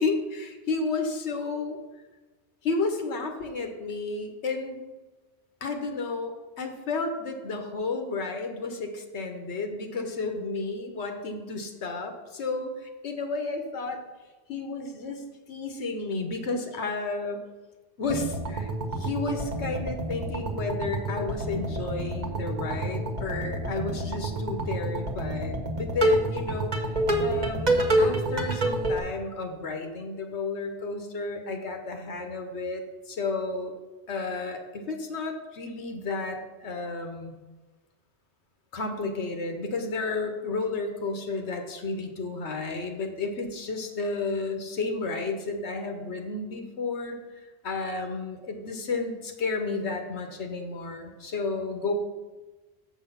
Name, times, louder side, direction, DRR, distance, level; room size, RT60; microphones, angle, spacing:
voice 1, 0.0-1.8 2.6-4.8 5.6-14.0 14.5-15.2 15.5-17.4 18.0-18.7 19.0-26.7 27.2-33.8 34.1-37.4 38.7-51.9, left 3 dB, 85° left, 4 dB, 1.3 m, -32 dB
sound 1, 18.0-29.0, right 1 dB, 40° right, 1.1 m, -28 dB
7.1 x 6.2 x 5.6 m, 1.2 s
omnidirectional pair, 1.1 m